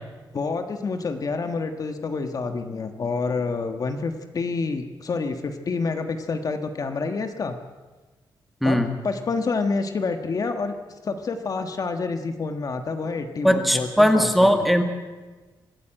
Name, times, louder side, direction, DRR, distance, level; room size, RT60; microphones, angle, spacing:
voice 1, 0.3-7.6 8.6-10.7 11.0-14.7, left 4 dB, 45° left, 7 dB, 1.4 m, -28 dB
voice 2, 13.4-14.8, equal, ahead, 6 dB, 1.9 m, -18 dB
25.0 x 14.0 x 8.9 m, 1.3 s
wide cardioid pair, 150°, 9 cm